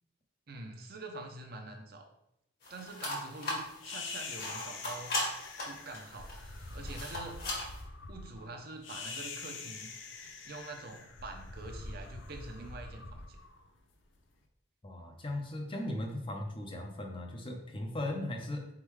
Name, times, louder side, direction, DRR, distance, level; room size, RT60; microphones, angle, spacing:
voice 1, 0.5-2.1 2.7-5.1 5.6-6.3 6.7-7.4 8.1-9.9 10.4-13.4, right 2 dB, 50° right, 3 dB, 0.7 m, -45 dB
sound 1, 2.6-7.8, left 1 dB, 50° left, 1.4 m, -39 dB
sound 2, 3.8-14.2, left 3 dB, 70° left, 0.6 m, -45 dB
voice 2, 14.8-18.7, left 1 dB, 25° left, 3 dB, 0.6 m, -37 dB
4.4 x 3.7 x 3.1 m, 0.80 s
head